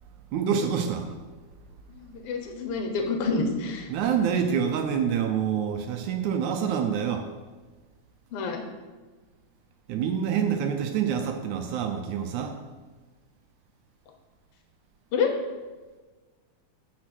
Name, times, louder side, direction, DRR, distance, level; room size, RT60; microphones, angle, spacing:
voice 1, 0.3-1.1 3.9-7.3 9.9-12.5, right 7 dB, 75° right, 5 dB, 1.9 m, -26 dB
voice 2, 2.3-3.8 8.3-8.6 15.1-15.3, left 4 dB, 65° left, 4 dB, 1.5 m, -27 dB
8.5 x 4.4 x 6.1 m, 1.3 s
omnidirectional pair, 3.7 m